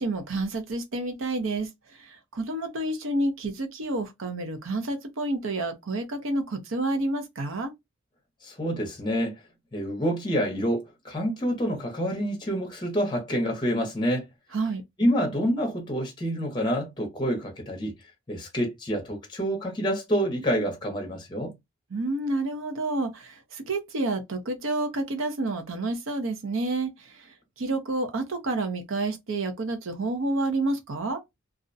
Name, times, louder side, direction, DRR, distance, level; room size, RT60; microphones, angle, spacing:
voice 1, 0.0-7.7 14.5-14.8 21.9-31.2, right 2 dB, 75° right, 0.6 m, -29 dB
voice 2, 8.4-9.4 9.7-14.3 15.0-17.9 18.3-21.5, equal, 20° left, 0.6 m, -27 dB
2.4 x 2.1 x 2.5 m
head